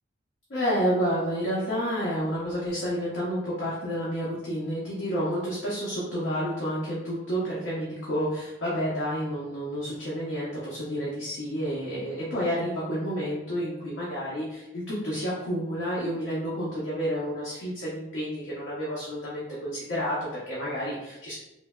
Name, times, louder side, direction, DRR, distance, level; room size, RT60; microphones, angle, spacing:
voice 1, 0.5-21.3, equal, 80° left, -7 dB, 0.6 m, -30 dB
3.1 x 2.1 x 2.2 m, 0.93 s
head